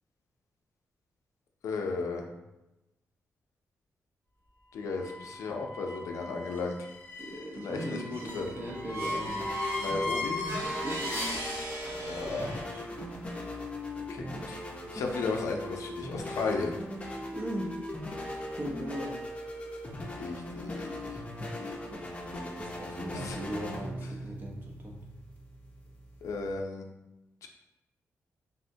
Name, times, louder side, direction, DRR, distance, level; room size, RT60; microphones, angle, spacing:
voice 1, 1.6-2.3 4.7-6.9 7.6-8.6 9.8-10.5 12.0-12.5 14.1-16.8 20.2-21.2 23.1-23.4 24.0-24.1 26.2-26.9 27.4-27.5, left 3 dB, 85° left, 3 dB, 0.4 m, -35 dB
sound 1, 4.9-12.6, left 1 dB, 75° right, 1.4 m, -37 dB
voice 2, 7.2-9.4 10.8-11.3 11.8-13.2 17.3-17.7 18.5-19.2 21.5-21.8 22.6-25.0, equal, 45° right, 0 dB, 0.6 m, -39 dB
sound 2, 8.4-26.5, left 1 dB, 25° left, 0.5 m, -39 dB
3.5 x 2.1 x 2.6 m, 0.98 s
wide cardioid pair, 120°, 5 cm